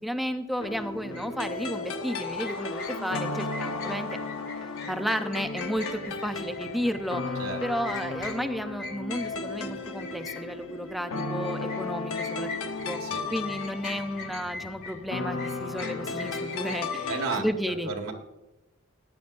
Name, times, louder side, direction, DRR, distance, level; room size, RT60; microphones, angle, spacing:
voice 1, 0.0-4.2 4.9-7.3 7.6-12.5 12.9-13.0 13.3-17.9, equal, ahead, 7 dB, 0.6 m, -32 dB
sound 1, 0.6-17.5, left 3 dB, 70° left, 1.0 m, -34 dB
sound 2, 1.1-1.3 2.1-9.6 10.0-13.0 13.3-17.1, left 3 dB, 50° left, 2.3 m, -41 dB
voice 2, 17.1-18.1, right 4 dB, 80° right, 3 dB, 2.0 m, -33 dB
15.0 x 11.0 x 2.6 m, 1.0 s
head